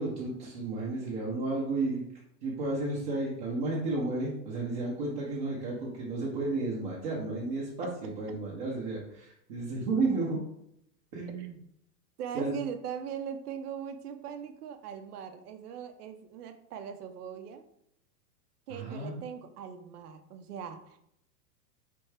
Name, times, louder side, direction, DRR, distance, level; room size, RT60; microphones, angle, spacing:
voice 1, 0.0-2.0 2.4-10.4 11.1-11.5 12.3-12.5 18.7-19.2, right 3 dB, 25° right, -6 dB, 0.7 m, -32 dB
voice 2, 12.2-17.6 18.7-21.0, right 8 dB, 70° right, 7 dB, 0.8 m, -40 dB
4.6 x 3.4 x 3.3 m, 0.75 s
supercardioid pair, 170°, 48 cm